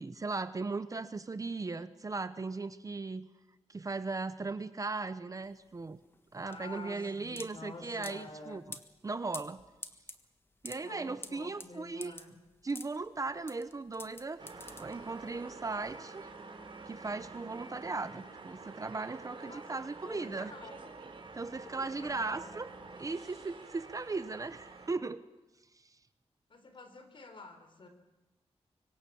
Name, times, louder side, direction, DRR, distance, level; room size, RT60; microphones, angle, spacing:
voice 1, 0.0-3.3 3.7-6.0 6.3-8.6 9.0-9.6 10.6-12.2 12.6-14.4 14.8-16.3 16.8-20.5 21.3-25.2 25.8-26.0, right 3 dB, 30° right, 12 dB, 0.9 m, -37 dB
sound 1, 5.4-15.4, left 2 dB, 20° left, 1.5 m, -48 dB
voice 2, 6.5-8.6 10.8-12.4 19.3-19.8 20.0-20.8 21.5-22.5 26.5-27.9, left 3 dB, 50° left, 7 dB, 4.2 m, -49 dB
sound 2, 14.4-24.9, right 3 dB, 50° right, 4.3 m, -48 dB
25.5 x 23.5 x 7.1 m, 1.0 s
wide cardioid pair, 150°, 11 cm